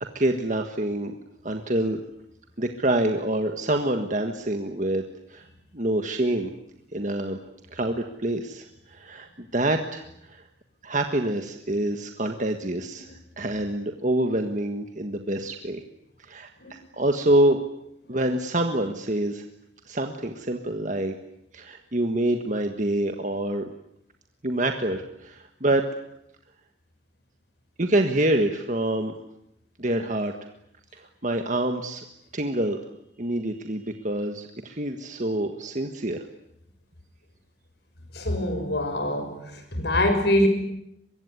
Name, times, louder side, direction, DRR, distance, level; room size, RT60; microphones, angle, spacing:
voice 1, 0.1-1.1 1.4-2.0 2.6-5.0 5.3-5.5 5.7-6.5 6.9-7.4 7.7-10.4 10.8-13.1 13.4-15.8 16.3-17.6 18.1-19.4 19.9-21.1 21.5-23.6 24.4-25.8 27.8-29.1 29.8-30.3 30.9-32.0 32.3-32.8 33.2-36.2, right 1 dB, 40° right, 5 dB, 1.6 m, -26 dB
voice 2, 38.1-39.4 39.7-40.5, left 1 dB, 65° left, 7 dB, 6.3 m, -23 dB
24.0 x 23.0 x 9.7 m, 0.80 s
head